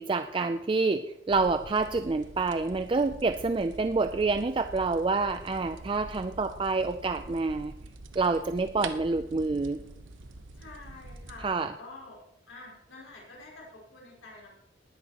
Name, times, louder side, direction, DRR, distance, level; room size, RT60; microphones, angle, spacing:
voice 1, 0.0-7.7 8.2-9.8 11.4-11.7, right 3 dB, 25° right, 8 dB, 0.3 m, -27 dB
sound 1, 1.3-11.5, right 3 dB, 85° right, 1.0 m, -45 dB
voice 2, 10.5-12.2 12.5-14.5, left 2 dB, 90° left, -4 dB, 4.5 m, -48 dB
19.5 x 11.0 x 2.9 m, 0.88 s
head